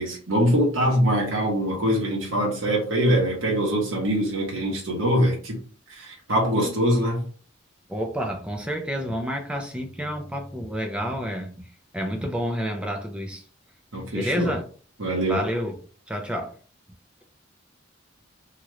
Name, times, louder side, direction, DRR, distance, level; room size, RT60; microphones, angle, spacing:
voice 1, 0.0-5.6 5.9-7.2 13.9-14.6 15.0-15.4, equal, 85° right, 1.2 m, -23 dB
voice 2, 7.9-11.7 11.9-13.4 14.1-14.6 15.3-15.8 16.1-16.6, equal, 5° right, 0.4 m, -29 dB
3.0 x 2.4 x 3.1 m
head